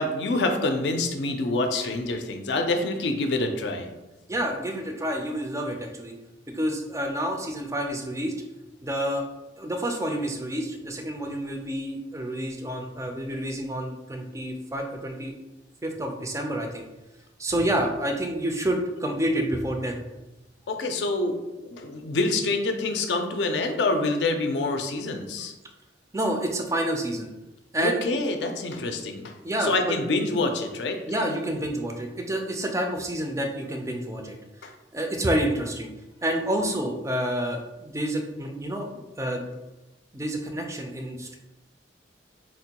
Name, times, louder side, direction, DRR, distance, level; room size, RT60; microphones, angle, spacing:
voice 1, 0.0-3.9 20.7-21.4 21.6-25.5 27.8-29.3 29.6-31.0 34.6-34.7, left 2 dB, 70° left, 5 dB, 0.4 m, -26 dB
voice 2, 4.3-6.1 6.5-8.3 8.8-9.2 9.6-15.3 15.8-16.8 17.4-20.0 26.1-27.3 27.7-28.0 28.7-28.8 29.4-30.0 31.1-34.4 34.9-35.9 36.2-39.5 40.1-41.4, right 1 dB, 15° right, 3 dB, 0.3 m, -28 dB
4.2 x 2.2 x 2.8 m, 1.0 s
head